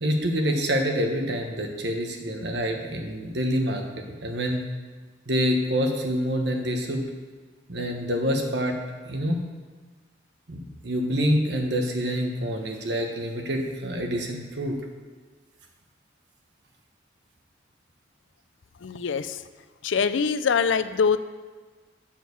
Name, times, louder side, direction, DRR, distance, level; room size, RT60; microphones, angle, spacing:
voice 1, 0.0-4.6 5.3-7.1 7.7-8.8 9.0-9.4 10.5-14.8, equal, 65° right, 2 dB, 1.3 m, -26 dB
voice 2, 18.8-19.4 19.8-21.2, left 6 dB, 85° left, 12 dB, 0.5 m, -23 dB
7.4 x 6.5 x 7.0 m, 1.4 s
head